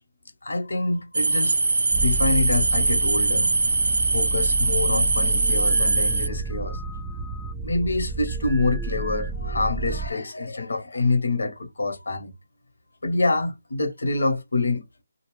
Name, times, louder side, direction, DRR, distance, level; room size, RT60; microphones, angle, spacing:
voice 1, 0.4-1.6 2.0-3.5 4.1-6.8 7.6-12.3 13.0-14.9, left 3 dB, 85° left, 1.0 m, -26 dB
sound 1, 1.1-6.3, right 3 dB, 80° right, 0.4 m, -22 dB
sound 2, 1.9-10.1, right 4 dB, 5° right, 0.3 m, -31 dB
2.7 x 2.0 x 3.0 m
hypercardioid pair, 165°, 0 cm